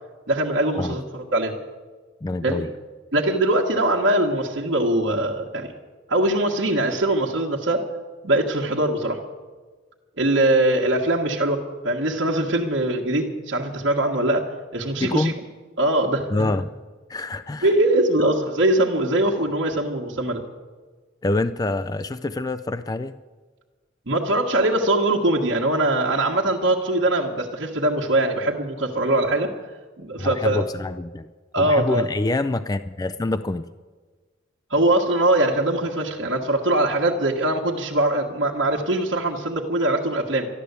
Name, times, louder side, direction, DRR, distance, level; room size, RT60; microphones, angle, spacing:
voice 1, 0.3-1.5 2.4-2.6 3.1-5.7 6.1-7.9 8.2-9.2 10.2-15.3 15.8-16.3 17.6-20.4 24.1-29.5 30.0-30.6 31.5-32.0 34.7-40.5, right 1 dB, 65° right, -2 dB, 1.5 m, -22 dB
voice 2, 2.2-2.7 15.0-15.4 16.3-16.7 17.1-17.7 21.2-23.2 30.2-31.3 31.6-33.7, left 2 dB, 20° left, 11 dB, 0.4 m, -26 dB
13.0 x 12.0 x 8.2 m, 1.4 s
head